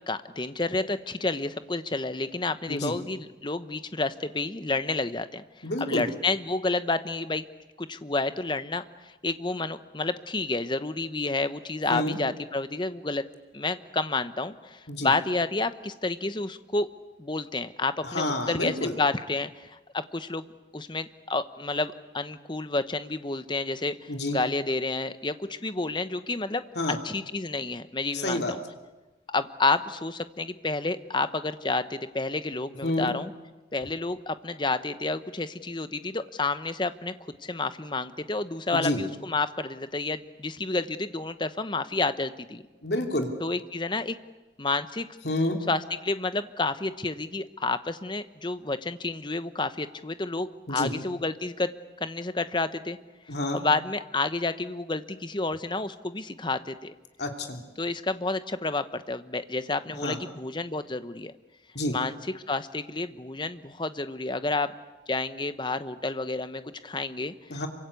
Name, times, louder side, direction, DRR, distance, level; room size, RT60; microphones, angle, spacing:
voice 1, 0.1-5.4 5.8-7.4 7.8-13.2 13.5-16.9 17.2-20.5 20.7-26.6 27.0-28.6 29.3-33.3 33.7-37.1 37.4-42.7 43.4-44.2 44.6-45.1 45.7-51.7 52.0-53.0 53.5-56.9 57.8-61.3 61.9-62.2 62.5-64.7 65.1-67.3, left 3 dB, 25° left, 12 dB, 0.9 m, -30 dB
voice 2, 5.6-6.1 11.9-12.2 14.9-15.1 18.0-18.9 24.1-24.4 26.8-27.0 28.1-28.6 32.8-33.1 38.7-39.0 42.8-43.3 45.2-45.6 50.7-50.9 53.3-53.6 57.2-57.6 60.0-60.2 61.7-62.0 67.5-67.7, left 1 dB, 65° left, 4 dB, 2.9 m, -28 dB
27.5 x 24.0 x 8.3 m, 1.1 s
head